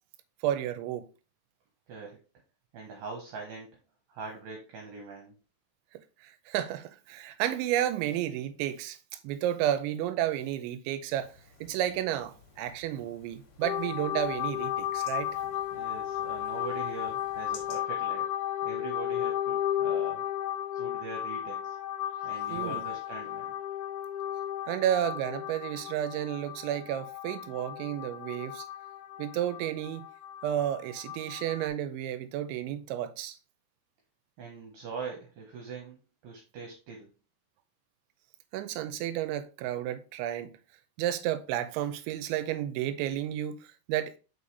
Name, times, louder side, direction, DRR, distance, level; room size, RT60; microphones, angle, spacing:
voice 1, 0.4-1.1 6.2-9.0 9.2-11.3 11.6-15.3 22.5-22.8 24.7-28.6 29.2-30.1 30.4-33.4 38.5-40.5 41.0-43.6 43.9-44.1, right 11 dB, 90° right, 3.0 m, -31 dB
voice 2, 1.9-2.2 2.7-3.8 4.1-5.4 15.3-18.3 18.6-20.3 20.7-21.8 22.2-23.5 34.4-36.0 36.2-37.1, right 4 dB, 65° right, 2.6 m, -42 dB
sound 1, 11.1-17.8, left 5 dB, 55° left, 2.5 m, -55 dB
sound 2, 13.6-31.7, left 11 dB, 85° left, 3.0 m, -34 dB
6.0 x 5.5 x 3.3 m
omnidirectional pair, 5.3 m